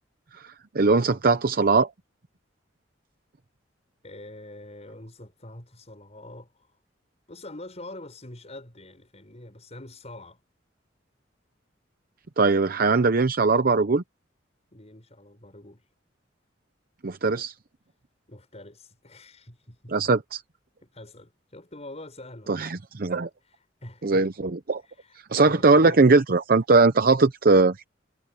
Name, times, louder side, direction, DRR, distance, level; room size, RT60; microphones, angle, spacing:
voice 1, 0.4-1.9 12.4-14.0 17.0-17.5 19.9-20.4 22.5-23.3 24.0-24.8 25.3-27.8, right 3 dB, 50° right, 0.7 m, -20 dB
voice 2, 4.0-6.8 7.3-10.4 14.7-15.9 18.3-19.9 20.8-22.7 23.4-24.2 24.8-26.0, left 1 dB, 35° left, 6.7 m, -45 dB
head